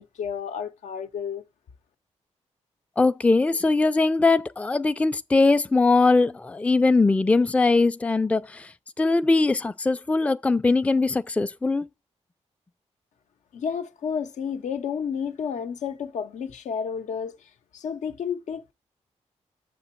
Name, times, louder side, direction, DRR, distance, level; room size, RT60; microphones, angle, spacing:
voice 1, 0.0-1.4 13.5-18.7, left 7 dB, 85° left, 0.6 m, -31 dB
voice 2, 3.0-8.7 9.0-11.9, left 3 dB, 10° left, 0.3 m, -21 dB
6.7 x 3.8 x 4.4 m
cardioid pair, 75°, 12 cm